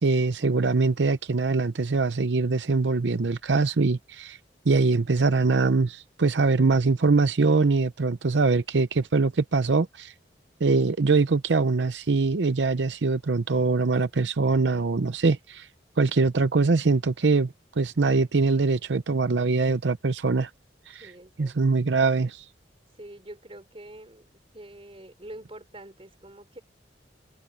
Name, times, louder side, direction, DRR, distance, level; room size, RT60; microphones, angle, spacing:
voice 1, 0.0-4.4 4.7-10.1 10.6-15.7 16.0-20.5 20.9-21.0 21.4-22.5, right 3 dB, 80° right, 0.7 m, -23 dB
voice 2, 21.0-21.6 22.9-26.6, right 1 dB, 30° right, 3.7 m, -45 dB
head